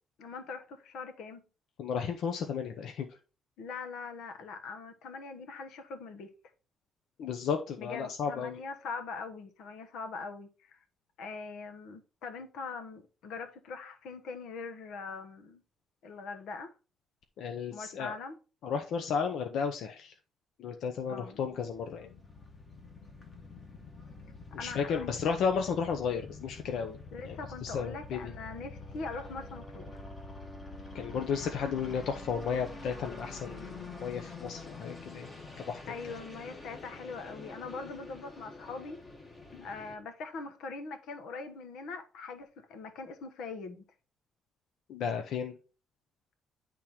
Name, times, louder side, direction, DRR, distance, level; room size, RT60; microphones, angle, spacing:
voice 1, 0.2-1.4 3.6-6.3 7.8-10.8 11.2-15.6 16.0-16.7 17.7-18.4 21.1-21.4 24.5-25.1 27.1-30.0 35.9-39.0 39.6-43.8, left 4 dB, 85° left, 1.2 m, -42 dB
voice 2, 1.8-3.1 7.2-8.6 17.4-18.1 18.6-20.1 20.6-22.1 24.6-27.0 27.2-27.4 27.6-28.3 30.9-35.3 35.7-35.8 39.5-39.7 44.9-45.6, left 6 dB, 70° left, 0.8 m, -33 dB
sound 1, 21.2-40.0, left 3 dB, 25° left, 1.3 m, -47 dB
10.5 x 3.7 x 4.4 m
cardioid pair, 165°, 0 cm